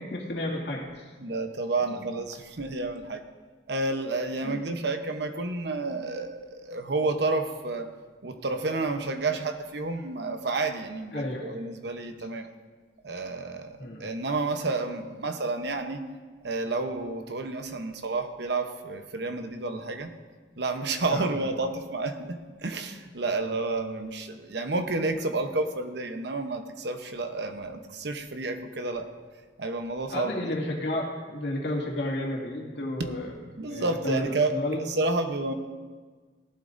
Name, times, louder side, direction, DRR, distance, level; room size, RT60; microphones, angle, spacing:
voice 1, 0.0-1.1 1.9-2.0 4.4-4.8 11.1-11.5 13.8-14.1 21.1-21.4 30.1-33.4 33.7-34.8, left 1 dB, 65° left, -2 dB, 2.3 m, -32 dB
voice 2, 1.2-3.2 3.7-7.9 8.2-12.5 13.0-16.0 16.4-20.1 20.6-29.1 29.6-30.5 33.6-35.5, right 3 dB, 65° right, 7 dB, 0.9 m, -30 dB
18.0 x 11.5 x 2.7 m, 1.4 s
head